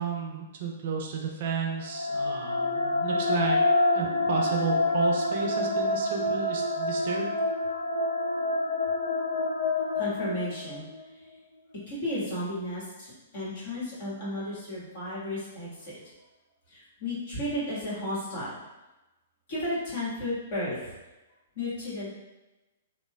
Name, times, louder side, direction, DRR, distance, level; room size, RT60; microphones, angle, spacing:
voice 1, 0.0-3.6 3.9-7.3, right 5 dB, 50° right, 0 dB, 0.4 m, -32 dB
sound 1, 1.7-10.9, left 2 dB, 85° left, 0.3 m, -27 dB
voice 2, 9.9-10.8 11.9-16.0 16.7-18.6 19.5-20.9 21.5-22.1, left 1 dB, 50° left, -8 dB, 1.4 m, -33 dB
2.9 x 2.1 x 2.3 m, 1.0 s
figure-of-eight pair, 110°, 0 cm